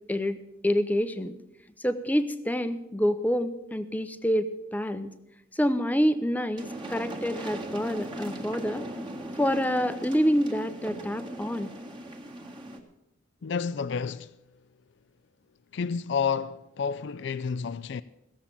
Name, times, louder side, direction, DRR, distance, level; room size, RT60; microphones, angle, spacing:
voice 1, 0.1-1.4 1.8-5.1 5.5-8.8 9.4-11.7, equal, 10° left, 0.7 m, -27 dB
sound 1, 6.6-12.8, right 1 dB, 25° right, 1.7 m, -38 dB
voice 2, 13.4-14.3 15.7-18.0, left 6 dB, 60° left, 0.4 m, -30 dB
16.5 x 7.3 x 8.3 m
head